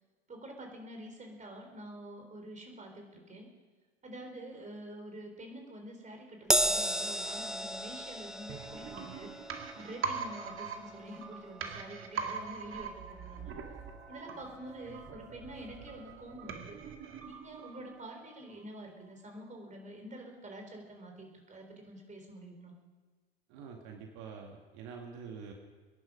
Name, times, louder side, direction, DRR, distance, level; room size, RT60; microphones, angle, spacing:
voice 1, 0.3-3.5 4.0-9.5 9.7-13.5 14.1-16.8 17.2-22.7, right 1 dB, 20° right, 3 dB, 4.1 m, -47 dB
Crash cymbal, 6.5-13.1 13.5-13.7 14.7-14.8, equal, ahead, 0.7 m, -35 dB
sound 1, 8.5-18.2 18.5-18.6, right 6 dB, 40° right, 2.0 m, -42 dB
voice 2, 23.5-25.5, right 6 dB, 60° right, 2 dB, 2.3 m, -46 dB
23.5 x 11.0 x 5.3 m, 1.4 s
hypercardioid pair, 80°, 34 cm